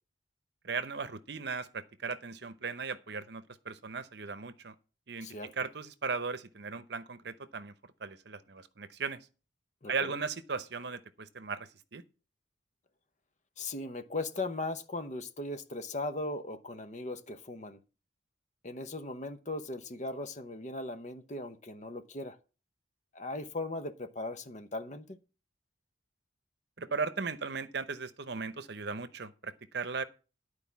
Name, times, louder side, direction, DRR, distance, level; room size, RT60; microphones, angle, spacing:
voice 1, 0.6-4.7 5.1-7.7 8.0-9.3 9.9-12.0 26.8-30.0, right 5 dB, 55° right, 0.8 m, -37 dB
voice 2, 5.2-5.5 9.8-10.1 13.6-17.8 18.6-22.4 23.1-25.2, left 2 dB, 35° left, 0.9 m, -38 dB
11.5 x 4.8 x 7.1 m
head